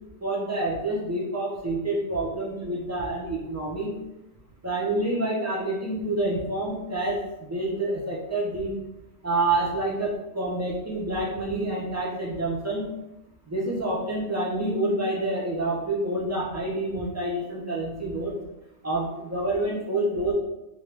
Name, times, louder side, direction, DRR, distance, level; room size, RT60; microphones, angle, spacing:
voice 1, 0.2-3.9 4.6-7.2 7.5-8.7 9.2-12.8 13.5-18.3 18.8-20.3, right 2 dB, 15° right, -4 dB, 0.7 m, -28 dB
2.9 x 2.9 x 3.4 m, 0.94 s
omnidirectional pair, 1.1 m